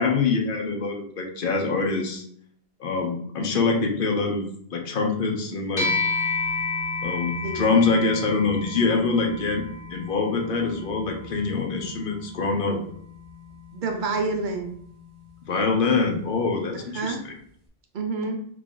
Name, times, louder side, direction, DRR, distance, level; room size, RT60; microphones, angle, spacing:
voice 1, 0.0-2.2 2.8-5.9 7.0-9.6 9.9-12.8 15.5-17.2, left 4 dB, 55° left, 3 dB, 0.8 m, -24 dB
sound 1, 5.8-15.4, left 3 dB, 30° left, 0.5 m, -32 dB
voice 2, 13.7-14.7 16.7-17.2 17.9-18.5, right 3 dB, 55° right, 3 dB, 0.6 m, -28 dB
3.3 x 2.4 x 3.7 m, 0.63 s
omnidirectional pair, 1.1 m